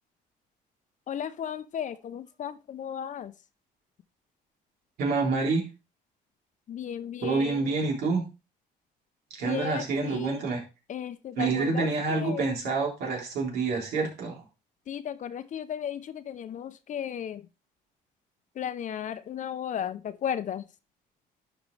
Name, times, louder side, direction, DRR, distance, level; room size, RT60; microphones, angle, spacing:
voice 1, 1.1-3.3 6.7-7.7 9.4-10.4 10.9-12.5 14.9-17.5 18.6-20.7, left 9 dB, 45° left, 0.7 m, -35 dB
voice 2, 5.0-5.6 7.2-8.2 9.4-10.6 11.4-14.4, right 4 dB, 75° right, 3.7 m, -27 dB
11.5 x 5.1 x 3.3 m
cardioid pair, 110°, 17 cm